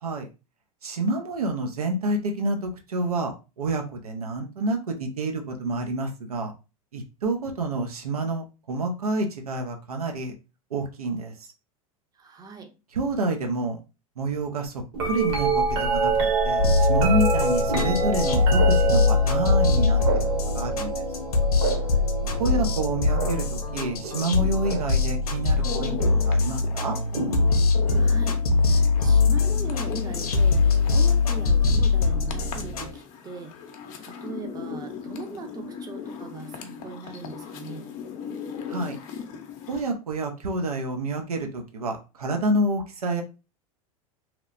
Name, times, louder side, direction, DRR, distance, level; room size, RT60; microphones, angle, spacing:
voice 1, 0.8-3.3 3.6-6.5 6.9-10.3 10.7-11.3 13.0-13.8 14.2-14.7 15.0-16.1 16.4-20.0 20.5-20.9 22.4-26.0 26.3-27.0 38.7-39.0 39.7-43.2, right 2 dB, 90° right, 0.6 m, -28 dB
voice 2, 12.1-12.7 21.7-22.7 27.8-28.4 29.0-33.6 34.0-37.9, right 3 dB, 20° right, 0.6 m, -40 dB
sound 1, 14.9-25.1 26.0-26.4 27.1-28.1 29.9-30.0, right 4 dB, 55° right, 1.0 m, -27 dB
sound 2, 16.6-32.9, left 4 dB, 90° left, 0.6 m, -22 dB
sound 3, 25.3-39.8, left 6 dB, 45° left, 0.6 m, -39 dB
3.0 x 2.0 x 2.4 m
hypercardioid pair, 100°, 19 cm